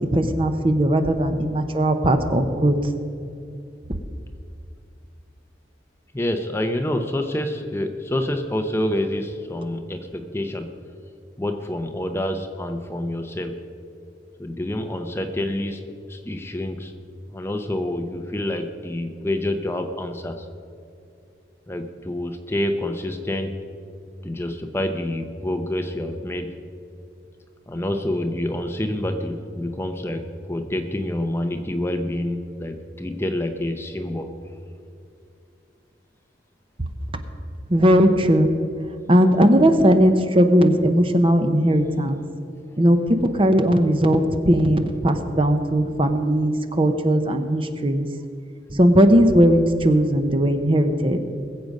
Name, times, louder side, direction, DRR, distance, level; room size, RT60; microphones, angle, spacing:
voice 1, 0.1-2.7 37.7-38.5 39.1-42.2 42.8-43.0 43.4-48.1 48.7-51.2, equal, 30° right, 7 dB, 0.8 m, -18 dB
voice 2, 6.1-10.7 11.4-13.6 14.4-15.8 16.1-16.9 17.3-20.4 21.7-23.6 24.2-26.5 27.7-34.3, left 1 dB, 15° left, 6 dB, 0.7 m, -27 dB
20.5 x 7.7 x 5.4 m, 2.5 s
head